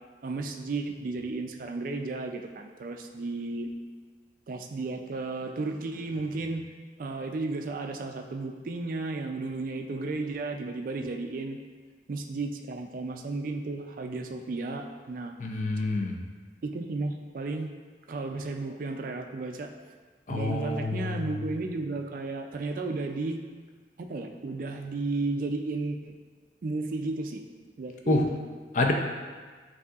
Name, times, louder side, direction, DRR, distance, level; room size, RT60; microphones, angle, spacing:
voice 1, 0.2-3.7 4.5-6.6 7.0-11.6 12.1-15.3 16.6-17.7 18.1-19.7 20.3-23.4 24.0-26.1 26.6-27.4 27.8-28.4, right 3 dB, 50° right, 4 dB, 0.3 m, -33 dB
voice 2, 15.4-16.2 20.3-21.2 28.1-28.2 28.7-28.9, left 2 dB, 45° left, 1 dB, 0.5 m, -27 dB
8.0 x 2.7 x 2.4 m, 1.5 s
head